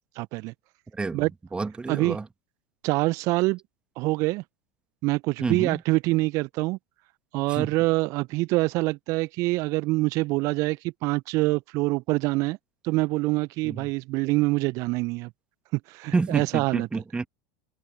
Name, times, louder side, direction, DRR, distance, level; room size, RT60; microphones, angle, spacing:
voice 1, 0.2-0.5 1.1-1.3 1.9-2.2 2.8-3.6 4.0-4.4 5.0-6.8 7.3-12.6 12.8-15.3 15.9-16.9, right 22 dB, 50° right, 1.1 m, -25 dB
voice 2, 0.9-2.3 5.4-5.8 7.5-7.7 13.6-13.9 16.1-17.3, right 3 dB, 15° right, 1.8 m, -29 dB
figure-of-eight pair, 80°, 7 cm